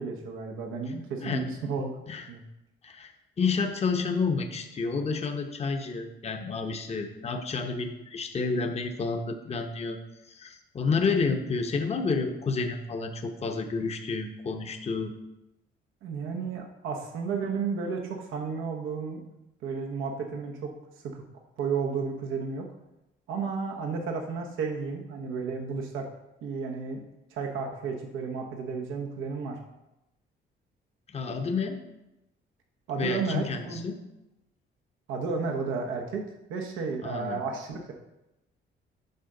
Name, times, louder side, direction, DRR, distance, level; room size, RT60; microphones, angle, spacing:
voice 1, 0.0-2.0 2.3-2.4 16.0-19.2 19.6-20.7 21.0-21.2 21.6-22.7 23.3-26.1 26.4-27.0 27.3-29.6 32.9-33.8 35.1-36.2 36.5-37.9, right 5 dB, 90° right, 3 dB, 0.9 m, -32 dB
voice 2, 3.4-10.0 10.3-15.1 31.1-31.8 33.0-34.0 37.0-37.4, left 4 dB, 30° left, 5 dB, 0.7 m, -30 dB
8.0 x 5.5 x 3.8 m, 0.94 s
cardioid pair, 90°, 20 cm